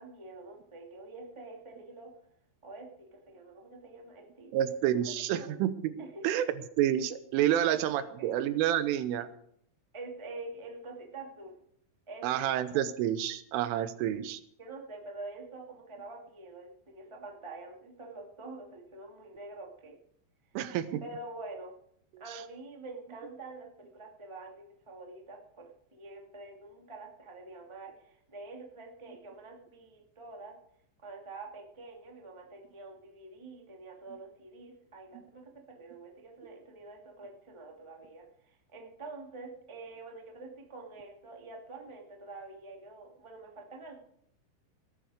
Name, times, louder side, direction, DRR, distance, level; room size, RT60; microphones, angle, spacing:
voice 1, 0.0-2.1 2.6-4.5 5.3-5.5 6.0-6.2 7.5-7.7 7.9-8.4 9.9-11.6 12.1-12.5 14.6-20.0 21.0-21.7 22.2-30.6 31.0-44.0, right 3 dB, 35° right, 0 dB, 0.4 m, -46 dB
voice 2, 4.5-5.9 6.2-6.5 6.8-9.3 12.2-14.4 20.6-21.0 22.1-22.2, right 11 dB, 85° right, 12 dB, 3.4 m, -29 dB
18.5 x 10.5 x 5.0 m, 0.68 s
omnidirectional pair, 5.6 m